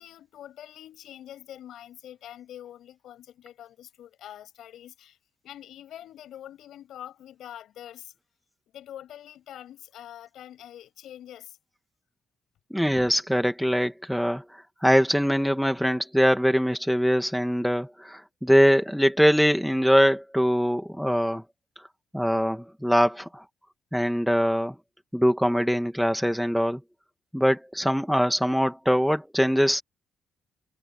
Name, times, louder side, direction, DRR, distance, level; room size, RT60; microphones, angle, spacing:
voice 1, 0.0-5.2 5.4-8.1 8.7-11.6, left 11 dB, 80° left, 8.0 m, -45 dB
voice 2, 12.7-14.4 14.8-21.4 22.1-23.4 23.9-24.7 25.1-26.8 27.3-29.8, equal, ahead, 2.4 m, -22 dB
cardioid pair, 120°, 0 cm